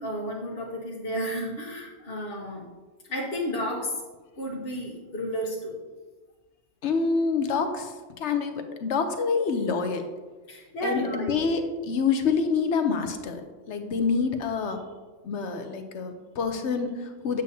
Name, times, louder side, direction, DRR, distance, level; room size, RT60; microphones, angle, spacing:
voice 1, 0.0-2.7 3.0-4.0 4.4-5.8 10.5-11.4, equal, 50° left, -5 dB, 1.3 m, -32 dB
voice 2, 6.8-10.1 10.8-14.8 15.2-17.4, left 5 dB, 65° left, 7 dB, 1.0 m, -27 dB
7.9 x 7.8 x 2.7 m, 1.3 s
omnidirectional pair, 1.3 m